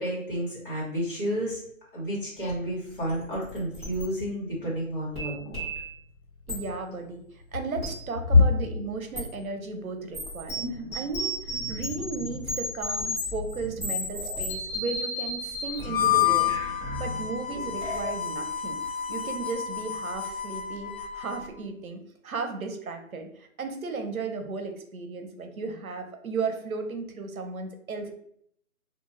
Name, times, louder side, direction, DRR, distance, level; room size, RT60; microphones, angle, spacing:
voice 1, 0.0-1.6 1.9-5.6 8.3-8.4, left 2 dB, 40° left, -6 dB, 1.3 m, -27 dB
sound 1, 2.5-2.6 2.9-4.0 5.1-5.9 6.5-6.6 7.8-8.0 9.1-9.3 10.1-18.1, left 1 dB, 20° left, 1.0 m, -34 dB
voice 2, 6.5-16.5 17.0-28.1, right 4 dB, 75° right, 5 dB, 0.7 m, -35 dB
Harmonica, 15.8-21.5, left 10 dB, 70° left, 0.7 m, -29 dB
2.4 x 2.4 x 3.1 m, 0.67 s
hypercardioid pair, 170°, 42 cm